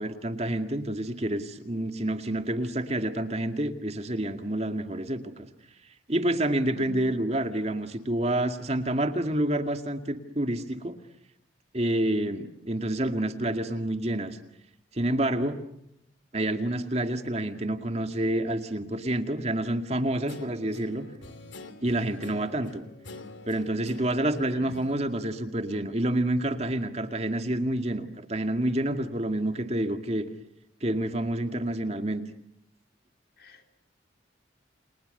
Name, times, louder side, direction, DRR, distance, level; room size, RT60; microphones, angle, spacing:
voice 1, 0.0-5.5 6.1-11.0 11.7-14.4 14.9-15.6 16.3-21.1 21.8-22.8 23.5-30.3 30.8-32.2, right 1 dB, 35° right, 7 dB, 2.1 m, -28 dB
voice 2, 6.8-7.2 24.5-24.7 33.4-33.7, equal, 55° left, 5 dB, 3.8 m, -44 dB
Guitar, 20.3-26.1, left 3 dB, 80° left, 2.8 m, -48 dB
30.0 x 29.0 x 6.7 m, 0.79 s
head